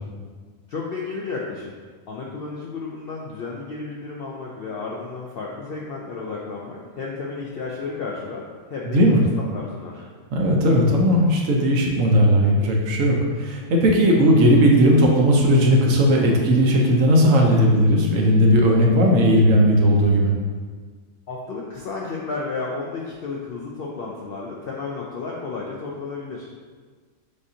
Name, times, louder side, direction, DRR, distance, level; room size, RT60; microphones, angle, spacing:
voice 1, 0.7-1.7 2.1-8.4 8.7-9.0 9.5-10.0 21.3-26.5, left 4 dB, 70° left, -3 dB, 0.5 m, -32 dB
voice 2, 8.9-9.2 10.3-20.3, equal, 70° right, 0 dB, 1.0 m, -17 dB
6.6 x 2.7 x 2.7 m, 1.5 s
omnidirectional pair, 1.5 m